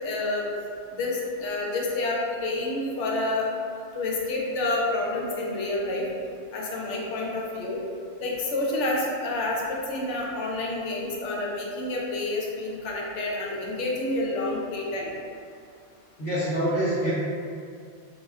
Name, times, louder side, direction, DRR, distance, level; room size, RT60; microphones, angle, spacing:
voice 1, 0.0-0.5 0.9-3.5 3.9-6.0 6.5-7.8 8.2-15.1, left 2 dB, 85° left, -2 dB, 0.9 m, -29 dB
voice 2, 16.2-17.1, right 1 dB, 55° left, -10 dB, 1.0 m, -25 dB
2.3 x 2.1 x 3.5 m, 2.3 s
omnidirectional pair, 1.2 m